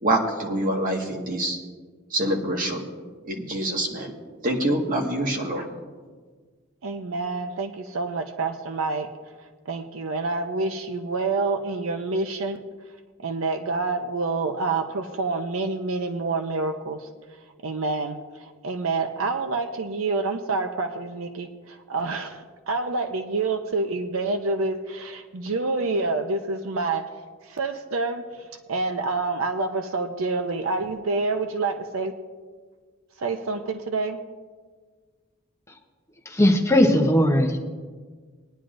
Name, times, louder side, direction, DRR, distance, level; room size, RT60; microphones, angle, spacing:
voice 1, 0.0-1.6 2.1-2.9 3.2-4.1 4.4-5.7, right 1 dB, 40° right, 0 dB, 1.7 m, -25 dB
voice 2, 6.8-9.1 9.7-12.6 13.2-17.1 17.6-27.1 27.4-32.1 33.2-34.2, right 3 dB, 70° right, 7 dB, 0.6 m, -27 dB
voice 3, 36.3-37.6, left 1 dB, 15° left, 2 dB, 0.9 m, -18 dB
20.0 x 10.0 x 2.6 m, 1.5 s
head